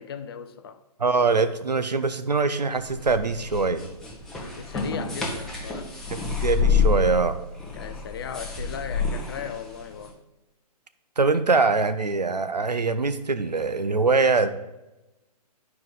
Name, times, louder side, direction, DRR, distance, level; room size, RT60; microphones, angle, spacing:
voice 1, 0.0-0.8 4.5-5.9 7.7-10.2, left 7 dB, 35° left, 0.5 m, -37 dB
voice 2, 1.0-3.8 6.1-7.4 11.2-14.5, right 4 dB, 85° right, 0.7 m, -23 dB
sound 1, 2.7-10.1, left 5 dB, ahead, 0.9 m, -28 dB
10.5 x 4.8 x 3.8 m
figure-of-eight pair, 130°, 21 cm